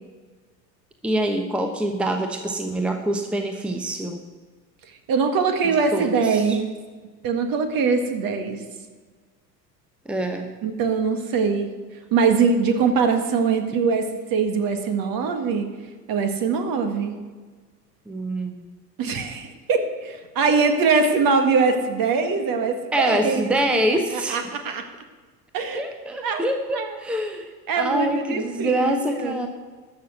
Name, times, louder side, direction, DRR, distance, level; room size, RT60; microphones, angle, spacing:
voice 1, 1.0-4.2 5.9-6.6 10.0-10.5 18.1-18.6 22.9-24.5 25.7-27.5 27.8-29.5, right 1 dB, ahead, 6 dB, 1.0 m, -25 dB
voice 2, 5.1-6.7 7.2-8.6 10.6-11.7 12.1-15.7 16.1-17.2 19.0-23.8 24.1-24.8 25.5-25.8 26.2-26.4 26.7-26.9 27.7-29.4, right 5 dB, 45° right, 7 dB, 1.8 m, -22 dB
13.0 x 6.4 x 8.0 m, 1.4 s
figure-of-eight pair, 75°, 49 cm